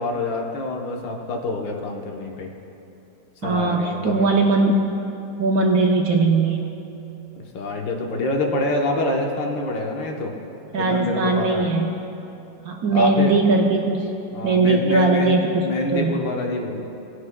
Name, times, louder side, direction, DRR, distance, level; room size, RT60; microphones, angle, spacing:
voice 1, 0.0-2.5 3.4-4.3 7.4-10.3 10.8-11.7 12.9-13.3 14.3-15.4 15.6-16.8, left 2 dB, 75° left, 1 dB, 1.7 m, -26 dB
voice 2, 3.4-4.8 5.4-6.7 10.7-11.9 12.6-14.1 14.4-15.7 15.9-16.1, right 3 dB, 65° right, 1 dB, 1.0 m, -19 dB
18.5 x 9.6 x 2.2 m, 2.9 s
omnidirectional pair, 2.1 m